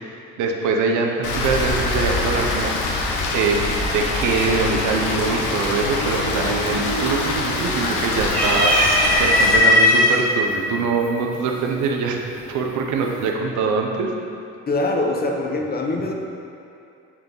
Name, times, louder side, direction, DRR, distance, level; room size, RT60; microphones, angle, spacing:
voice 1, 0.4-3.1 3.3-3.7 3.9-12.2 12.5-14.1, right 4 dB, 70° right, 1 dB, 0.7 m, -23 dB
Rain, 1.2-9.6, left 2 dB, 75° left, 0.8 m, -24 dB
sound 1, 6.7-6.8 7.1-7.8 8.2-10.2 11.0-11.1 12.4-12.8, left 1 dB, 5° left, 1.4 m, -17 dB
voice 2, 14.7-16.1, left 2 dB, 30° left, 1 dB, 0.8 m, -23 dB
7.2 x 3.5 x 3.8 m, 2.6 s
cardioid pair, 100°, 31 cm